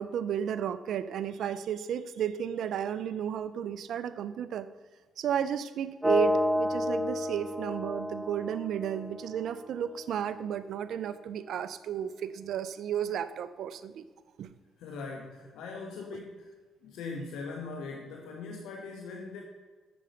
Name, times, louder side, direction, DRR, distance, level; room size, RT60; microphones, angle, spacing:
voice 1, 0.0-4.7 5.2-14.1 14.4-14.5, right 9 dB, 70° right, 12 dB, 0.5 m, -33 dB
sound 1, 6.0-10.0, left 1 dB, 5° right, 1.0 m, -30 dB
voice 2, 14.8-16.5 16.8-19.4, left 4 dB, 85° left, 2 dB, 1.2 m, -40 dB
8.4 x 6.9 x 7.8 m, 1.5 s
cardioid pair, 90°, 0 cm